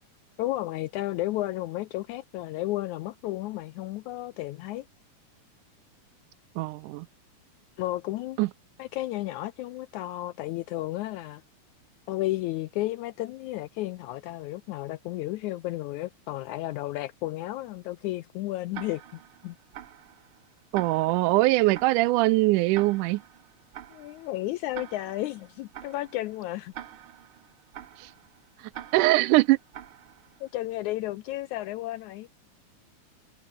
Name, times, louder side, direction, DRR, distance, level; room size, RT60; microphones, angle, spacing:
voice 1, 0.4-4.9 7.8-8.4 8.8-11.4 12.1-19.6 23.9-26.7 30.4-32.3, left 16 dB, 80° left, 1.7 m, -33 dB
voice 2, 6.6-7.1 8.4-8.5 20.7-23.2 28.0-28.1 28.6-29.6, right 20 dB, 80° right, 1.9 m, -22 dB
Tick-tock, 18.7-30.6, right 11 dB, 65° right, 1.3 m, -46 dB
omnidirectional pair, 3.9 m